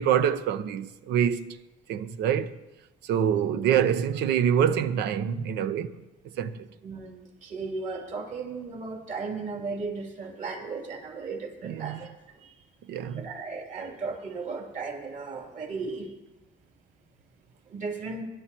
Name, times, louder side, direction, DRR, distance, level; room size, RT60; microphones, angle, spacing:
voice 1, 0.0-1.6 1.9-2.6 3.1-5.9 6.4-6.6 11.6-12.0 12.9-13.3, right 9 dB, 80° right, 0.8 m, -25 dB
voice 2, 6.8-12.1 12.4-12.5 13.1-16.1 17.7-18.2, right 4 dB, 50° right, 3.0 m, -36 dB
25.0 x 11.5 x 3.0 m
cardioid pair, 110°, 17 cm